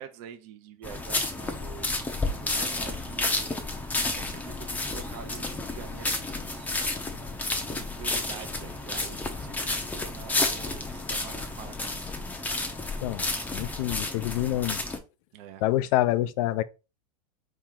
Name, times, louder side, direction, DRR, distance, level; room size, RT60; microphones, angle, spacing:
voice 1, 0.0-3.8 4.1-6.7 7.6-12.0 15.3-15.6, right 10 dB, 50° right, 0.8 m, -46 dB
sound 1, 0.8-15.0, left 2 dB, 10° left, 0.7 m, -31 dB
voice 2, 13.5-14.8 15.6-16.6, left 15 dB, 60° left, 0.5 m, -26 dB
4.3 x 3.1 x 3.7 m
hypercardioid pair, 125°, 20 cm